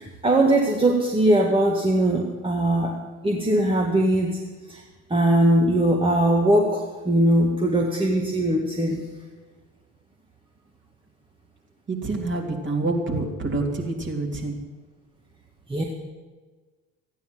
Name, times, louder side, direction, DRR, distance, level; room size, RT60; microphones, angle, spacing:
voice 1, 0.0-3.0 3.2-4.4 4.7-4.8 5.1-9.0 15.7-15.8, right 1 dB, 15° right, 0 dB, 1.7 m, -20 dB
voice 2, 11.9-14.6, right 2 dB, 30° right, 0 dB, 3.1 m, -27 dB
14.5 x 9.5 x 7.7 m, 1.4 s
figure-of-eight pair, 60°, 38 cm